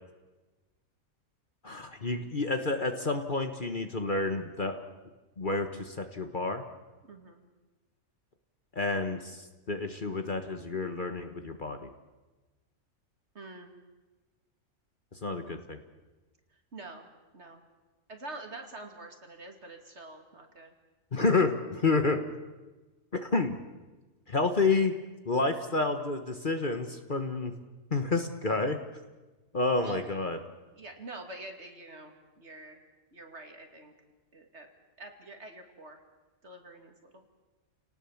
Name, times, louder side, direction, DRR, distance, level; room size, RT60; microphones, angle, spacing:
voice 1, 1.6-4.8 5.4-6.6 8.7-11.9 15.2-15.8 21.1-22.2 23.1-23.6 24.3-24.9 25.2-27.5 27.9-28.8 29.5-30.4, left 3 dB, 35° left, 6 dB, 1.4 m, -29 dB
voice 2, 7.0-7.4 13.3-13.8 16.7-17.1 17.3-17.6 18.1-20.7 29.8-30.0 30.7-32.8 33.1-33.9 34.3-34.7 35.0-36.0 36.4-37.3, right 2 dB, 50° right, 4 dB, 2.8 m, -46 dB
29.5 x 18.5 x 7.3 m, 1.2 s
omnidirectional pair, 1.5 m